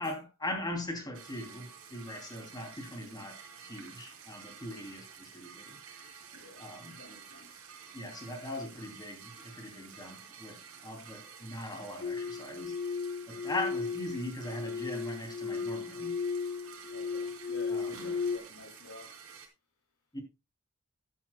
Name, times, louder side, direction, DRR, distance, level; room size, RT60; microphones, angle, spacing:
voice 1, 0.0-6.2 6.5-7.0 7.9-12.8 13.3-16.2 17.7-18.2 20.1-20.2, left 1 dB, 20° left, 2.8 m, -40 dB
sound 1, 1.1-19.5, right 6 dB, 85° right, 2.7 m, -51 dB
voice 2, 6.3-6.7 7.0-7.6 16.8-19.2, left 2 dB, 80° left, 2.8 m, -51 dB
sound 2, 12.0-18.4, left 5 dB, 55° left, 0.9 m, -35 dB
13.0 x 11.0 x 2.2 m
head